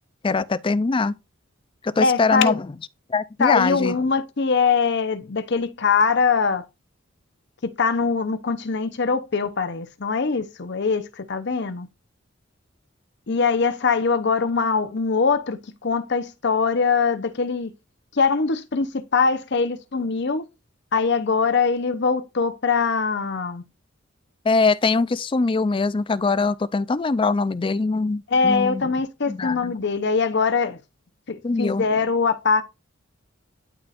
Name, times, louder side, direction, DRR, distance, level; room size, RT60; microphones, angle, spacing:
voice 1, 0.2-1.2 1.8-2.7 3.1-4.0 24.4-28.8 29.3-29.7 31.4-31.9, left 4 dB, 25° left, 0.4 m, -22 dB
voice 2, 2.0-2.5 3.4-6.7 7.6-11.9 13.3-17.7 18.1-20.4 20.9-23.6 28.3-30.8 31.3-32.6, left 5 dB, 55° left, 0.8 m, -22 dB
12.0 x 4.2 x 2.5 m
head